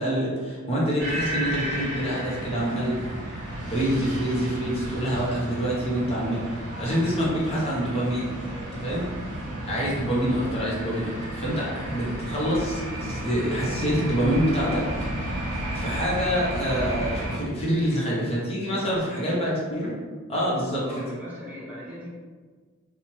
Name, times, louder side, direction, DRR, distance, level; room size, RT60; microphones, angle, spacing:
voice 1, 0.0-2.9 3.7-8.3 8.7-9.1 9.7-14.8 15.7-19.9 20.3-21.0, equal, 30° left, -6 dB, 0.6 m, -26 dB
sound 1, 1.0-17.4, right 1 dB, 55° right, 0.9 m, -33 dB
voice 2, 18.7-19.4 20.4-20.5 20.8-22.1, left 1 dB, 10° right, -8 dB, 0.6 m, -40 dB
2.7 x 2.0 x 3.0 m, 1.5 s
head